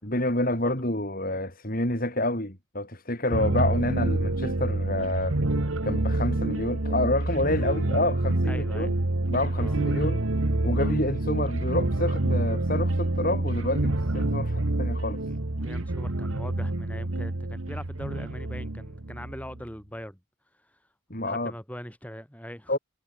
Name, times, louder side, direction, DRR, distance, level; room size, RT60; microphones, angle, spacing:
voice 1, 0.0-5.4 5.8-8.9 9.3-10.2 10.6-15.2 21.1-21.5 22.7-22.8, left 1 dB, 40° left, 6.6 m, -28 dB
sound 1, 3.3-19.6, right 2 dB, 70° right, 1.5 m, -27 dB
voice 2, 8.5-8.9 9.5-9.8 10.7-10.9 13.8-13.9 15.2-20.2 20.6-20.8 21.2-22.8, equal, 5° left, 4.8 m, -41 dB
head